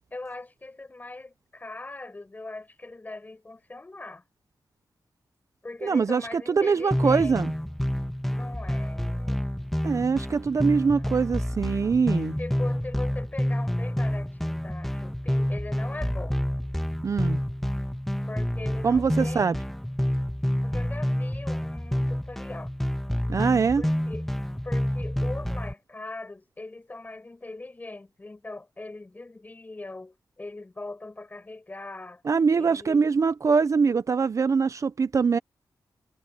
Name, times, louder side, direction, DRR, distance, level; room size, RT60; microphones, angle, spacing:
voice 1, 0.1-4.2 5.6-7.4 8.3-9.4 10.5-11.1 12.4-16.4 18.3-19.6 20.6-22.7 23.8-32.2 32.6-33.1, left 2 dB, 20° left, 6.5 m, -40 dB
voice 2, 5.8-7.5 9.8-12.3 17.0-17.4 18.8-19.6 23.3-23.8 32.2-35.4, right 5 dB, 45° right, 0.5 m, -23 dB
sound 1, 6.9-25.7, equal, 5° left, 1.5 m, -28 dB
wide cardioid pair, 175°, 8 cm